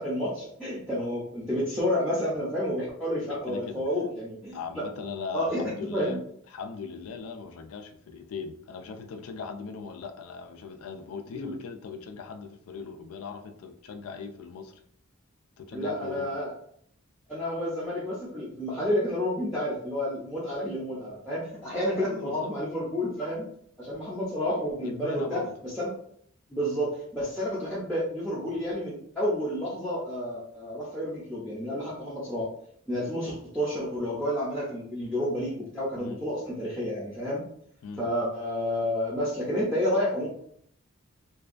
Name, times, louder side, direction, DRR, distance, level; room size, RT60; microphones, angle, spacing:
voice 1, 0.0-4.9 5.3-6.2 11.3-11.5 15.7-16.5 17.3-23.5 23.8-25.9 26.5-32.5 32.9-37.4 38.0-40.3, equal, ahead, -8 dB, 0.5 m, -30 dB
voice 2, 3.2-3.8 4.5-6.2 6.5-14.8 15.6-16.4 22.0-22.5 24.8-25.5 36.0-36.2 37.8-38.1, left 5 dB, 90° left, 7 dB, 0.4 m, -39 dB
2.5 x 2.2 x 2.4 m, 0.65 s
head